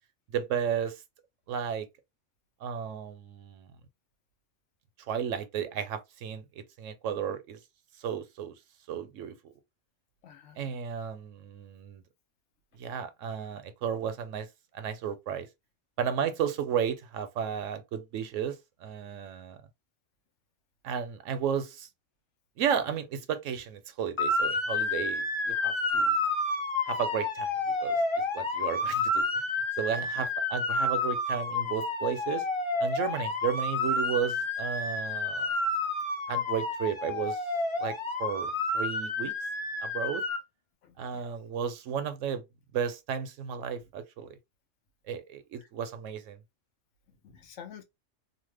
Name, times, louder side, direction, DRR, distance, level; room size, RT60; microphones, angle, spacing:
voice 1, 0.3-1.0 1.5-1.9 2.6-3.7 5.1-6.5 6.8-7.6 8.0-8.6 8.9-9.5 10.6-12.0 12.7-14.5 14.7-15.5 16.0-19.6 20.8-21.9 22.6-26.2 26.9-28.0 28.3-32.4 32.8-35.5 36.3-37.4 37.8-39.3 39.8-40.2 41.0-42.4 42.7-44.4 45.1-46.4, right 8 dB, 85° right, 1.0 m, -33 dB
voice 2, 10.2-10.7 30.2-30.3 40.8-41.2 47.2-47.8, left 8 dB, 75° left, 1.0 m, -48 dB
Motor vehicle (road) / Siren, 24.2-40.4, left 2 dB, 30° left, 0.6 m, -30 dB
2.8 x 2.1 x 3.2 m
omnidirectional pair, 1.3 m